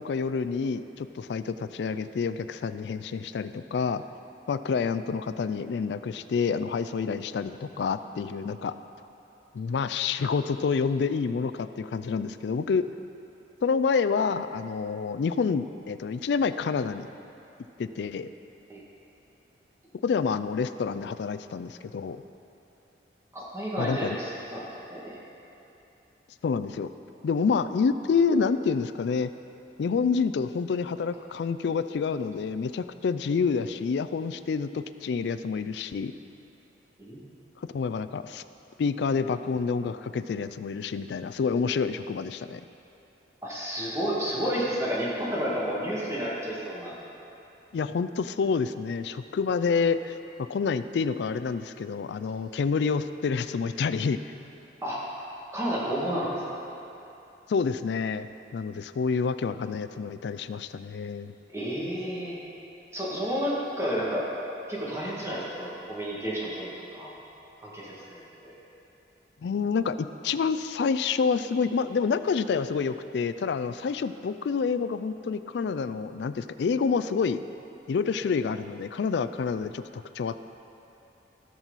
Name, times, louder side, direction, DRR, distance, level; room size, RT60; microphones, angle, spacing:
voice 1, 0.0-4.0 4.5-8.7 9.5-12.9 13.6-17.1 17.8-18.3 20.0-22.2 23.8-24.2 26.4-26.9 27.2-29.3 29.8-36.1 37.7-38.4 38.8-42.6 47.7-50.1 50.4-54.2 57.5-61.3 69.4-77.4 77.9-80.4, left 5 dB, 70° left, 12 dB, 0.3 m, -28 dB
voice 2, 23.3-25.2 37.0-37.2 43.4-46.9 54.8-55.0 55.5-56.4 61.5-62.4 62.9-64.3 64.7-67.1 67.6-68.6, equal, 15° right, -7 dB, 2.0 m, -31 dB
16.5 x 6.2 x 4.0 m, 2.9 s
head